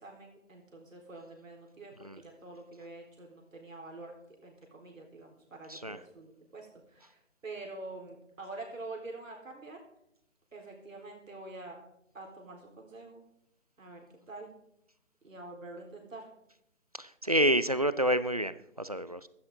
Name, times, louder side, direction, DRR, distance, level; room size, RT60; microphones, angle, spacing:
voice 1, 0.0-4.1 4.4-9.8 10.5-11.8 12.1-13.2 13.8-14.0 14.3-14.5 15.2-16.3, right 2 dB, 85° right, 1 dB, 4.1 m, -46 dB
voice 2, 17.0-19.3, equal, 30° right, 15 dB, 0.4 m, -29 dB
16.0 x 12.5 x 3.7 m, 0.79 s
figure-of-eight pair, 150°, 39 cm